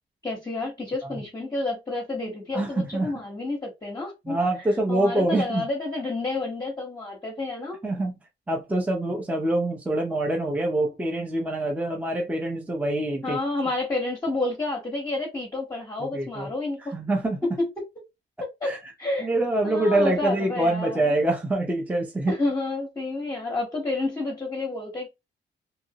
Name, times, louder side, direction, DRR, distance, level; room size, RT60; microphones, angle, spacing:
voice 1, 0.2-7.8 13.2-16.9 17.4-17.8 18.4-19.3 19.6-21.1 22.3-25.1, left 2 dB, 20° left, 0.9 m, -30 dB
voice 2, 2.5-3.1 4.3-5.6 7.8-8.1 8.5-13.4 16.0-16.5 16.9-17.5 18.6-18.8 19.2-22.3, right 1 dB, 10° right, 0.5 m, -25 dB
2.8 x 2.5 x 2.7 m
wide cardioid pair, 155°, 19 cm